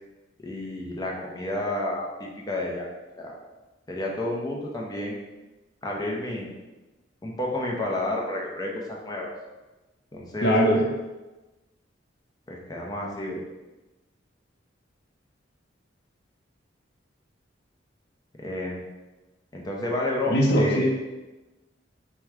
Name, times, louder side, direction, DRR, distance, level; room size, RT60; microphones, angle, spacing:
voice 1, 0.4-2.9 3.2-3.4 3.9-5.2 5.8-6.5 7.2-9.3 10.1-10.8 12.5-13.4 18.4-18.9 19.5-20.9, left 1 dB, 20° left, -2 dB, 0.6 m, -31 dB
voice 2, 10.4-10.8 20.3-20.9, equal, 60° left, 0 dB, 0.7 m, -20 dB
4.6 x 2.3 x 3.5 m, 1.1 s
head